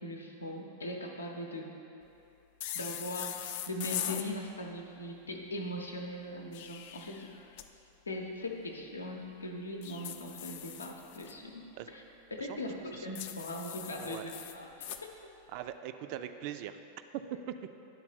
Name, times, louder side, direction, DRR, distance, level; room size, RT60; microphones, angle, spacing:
voice 1, 0.0-1.8 2.7-7.3 8.1-12.0 12.3-14.7 15.0-15.1, left 1 dB, 75° left, 2 dB, 0.7 m, -40 dB
sound 1, 2.6-4.3 6.3-7.7 9.8-11.3 13.2-15.0, left 11 dB, 50° left, 0.4 m, -41 dB
voice 2, 15.5-16.8 17.1-17.3, right 11 dB, 45° right, 9 dB, 0.3 m, -41 dB
10.5 x 4.0 x 4.3 m, 2.8 s
figure-of-eight pair, 90°, 0 cm